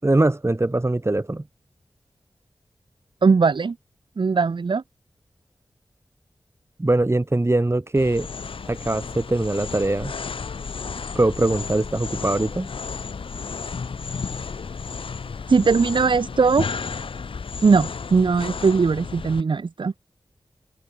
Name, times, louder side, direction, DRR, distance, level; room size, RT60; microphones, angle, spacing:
voice 1, 0.0-1.4 6.8-8.3 8.7-10.1 11.1-12.7, right 2 dB, 30° right, 5.9 m, -22 dB
voice 2, 3.2-3.7 4.2-4.8 15.5-16.7 17.6-19.9, right 4 dB, 65° right, 0.9 m, -19 dB
sound 1, 8.0-19.4, left 5 dB, 90° left, 5.1 m, -33 dB
cardioid pair, 50°, 9 cm